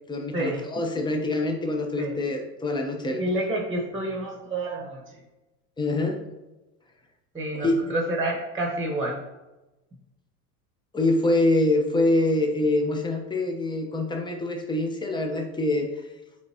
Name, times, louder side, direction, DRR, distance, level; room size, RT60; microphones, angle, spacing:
voice 1, 0.1-3.3 5.8-6.2 7.5-7.7 10.9-15.9, left 2 dB, 10° left, 3 dB, 1.0 m, -25 dB
voice 2, 3.2-5.0 7.3-9.2, right 1 dB, 10° right, 0 dB, 1.3 m, -28 dB
9.3 x 4.0 x 2.9 m, 1.0 s
hypercardioid pair, 105°, 46 cm